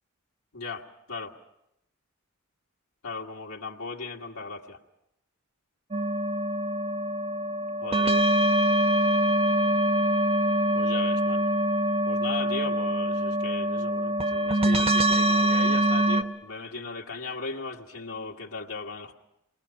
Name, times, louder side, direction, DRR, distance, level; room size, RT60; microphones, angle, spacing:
voice 1, 3.0-4.8 7.8-8.3 10.7-11.4 12.1-19.1, left 4 dB, 85° left, 0 dB, 1.9 m, -37 dB
sound 1, 5.9-16.2, right 1 dB, 25° right, 1.1 m, -24 dB
28.0 x 21.5 x 5.8 m, 0.82 s
head